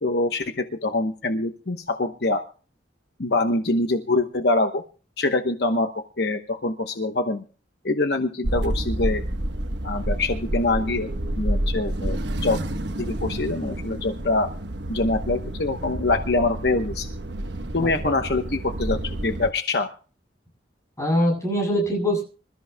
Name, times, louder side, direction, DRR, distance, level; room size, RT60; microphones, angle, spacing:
voice 1, 0.0-2.4 3.2-4.8 5.2-5.9 6.2-7.4 7.8-9.2 9.8-12.2 12.4-12.6 13.0-14.5 14.9-17.1 17.7-19.9, left 2 dB, 60° left, 7 dB, 1.0 m, -24 dB
sound 1, 8.4-19.5, right 1 dB, 75° right, 1.2 m, -29 dB
voice 2, 17.8-18.1 21.0-22.2, equal, 15° left, 0 dB, 7.8 m, -23 dB
26.0 x 14.0 x 2.3 m, 0.38 s
head